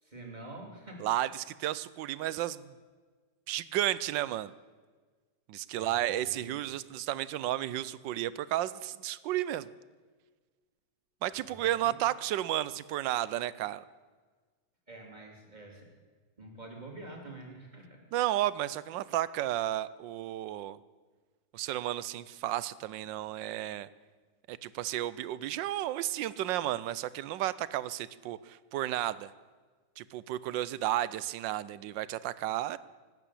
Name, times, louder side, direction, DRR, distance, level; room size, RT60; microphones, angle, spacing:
voice 1, 0.0-1.2 5.7-6.5 11.4-12.0 14.9-15.9 16.4-18.0, right 2 dB, 25° right, 0 dB, 3.1 m, -47 dB
voice 2, 1.0-2.7 3.5-4.5 5.5-9.7 11.2-13.8 18.1-20.8 21.5-23.9 24.5-29.3 30.0-32.8, right 13 dB, 85° right, 17 dB, 1.3 m, -32 dB
18.0 x 9.0 x 8.3 m, 1.4 s
omnidirectional pair, 1.9 m